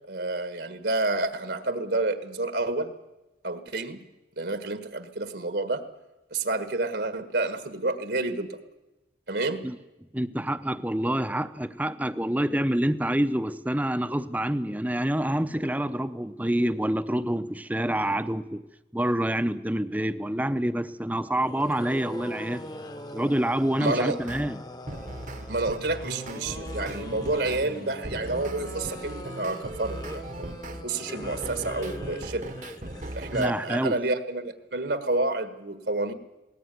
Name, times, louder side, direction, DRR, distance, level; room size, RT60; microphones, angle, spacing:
voice 1, 0.1-2.9 3.4-4.0 4.4-5.8 6.3-8.6 9.3-9.7 23.8-24.2 25.5-32.5 33.1-36.1, right 2 dB, 70° right, 1.6 m, -29 dB
voice 2, 10.1-18.6 18.9-22.7 23.1-24.6 33.3-34.0, right 1 dB, 10° right, 0.7 m, -27 dB
sound 1, 21.4-33.8, left 1 dB, 20° left, 1.0 m, -41 dB
sound 2, 24.2-24.5 24.9-30.8 31.2-33.5, right 1 dB, 45° right, 1.1 m, -39 dB
20.0 x 18.5 x 9.4 m
head